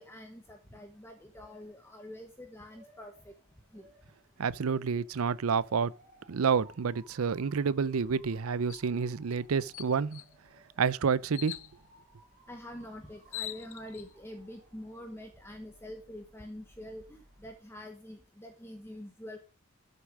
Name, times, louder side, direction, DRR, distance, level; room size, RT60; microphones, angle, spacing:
voice 1, 0.0-3.3 3.7-3.9 12.5-19.4, left 1 dB, 10° left, 1.1 m, -46 dB
Motor vehicle (road) / Siren, 0.9-17.6, right 1 dB, 35° right, 4.4 m, -62 dB
voice 2, 4.4-5.9 6.3-10.2 10.8-11.6, right 6 dB, 85° right, 0.5 m, -29 dB
sound 1, 8.7-8.9 9.3-9.4 9.7-10.3 11.3-11.7 12.8-12.9 13.2-14.1, left 14 dB, 70° left, 0.6 m, -41 dB
13.0 x 6.8 x 5.0 m
head